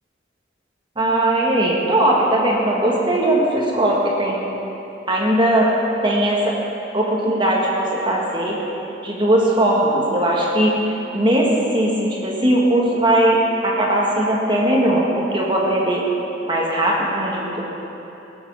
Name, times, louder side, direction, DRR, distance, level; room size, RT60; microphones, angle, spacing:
voice 1, 1.0-4.4 5.1-5.7 6.0-6.6 6.9-8.6 9.0-16.1 16.5-17.6, right 1 dB, 25° right, -3 dB, 1.6 m, -19 dB
18.0 x 7.9 x 6.3 m, 3.0 s
head